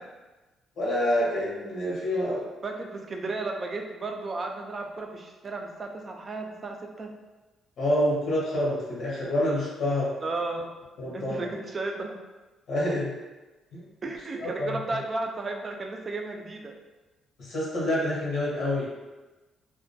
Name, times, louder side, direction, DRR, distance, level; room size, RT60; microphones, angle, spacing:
voice 1, 0.8-2.4 7.8-10.1 11.0-11.5 12.7-13.1 13.7-13.8 14.4-14.7 17.4-18.9, left 1 dB, 70° left, -5 dB, 0.8 m, -27 dB
voice 2, 2.6-7.1 10.2-10.7 11.1-12.2 14.0-16.7, right 3 dB, 40° right, 3 dB, 0.3 m, -34 dB
2.2 x 2.2 x 2.6 m, 1.2 s
cardioid pair, 90°, 0 cm